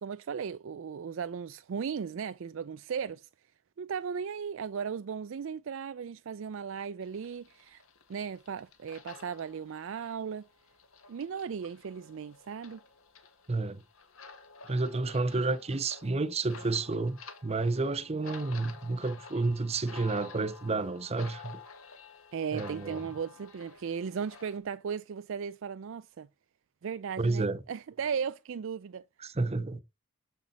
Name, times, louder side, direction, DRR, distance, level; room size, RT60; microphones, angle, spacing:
voice 1, 0.0-3.3 3.8-7.8 8.1-10.5 11.1-12.8 22.3-26.3 26.8-29.0, right 6 dB, 65° right, 0.4 m, -36 dB
sound 1, 7.0-24.6, left 4 dB, 85° left, 1.8 m, -51 dB
voice 2, 13.5-13.8 14.7-21.6 22.5-23.0 27.2-27.6 29.2-29.8, right 3 dB, 30° right, 0.7 m, -30 dB
8.0 x 7.3 x 4.1 m
head